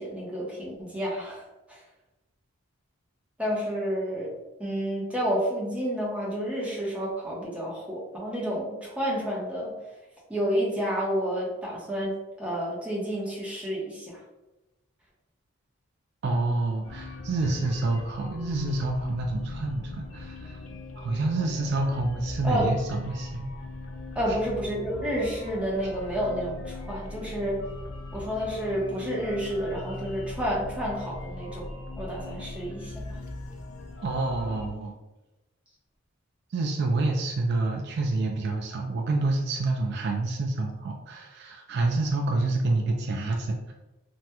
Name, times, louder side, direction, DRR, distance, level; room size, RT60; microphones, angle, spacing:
voice 1, 0.0-1.8 3.4-4.3 4.6-9.7 10.3-14.2 22.4-22.7 24.1-27.6 28.1-33.2, equal, 5° right, -5 dB, 0.7 m, -30 dB
voice 2, 16.2-20.6 21.0-23.5 24.3-24.4 34.0-34.9 36.5-43.7, right 2 dB, 50° right, 2 dB, 0.3 m, -28 dB
sound 1, 16.8-34.7, left 2 dB, 65° left, 0.4 m, -39 dB
3.4 x 2.1 x 2.8 m, 1.0 s
head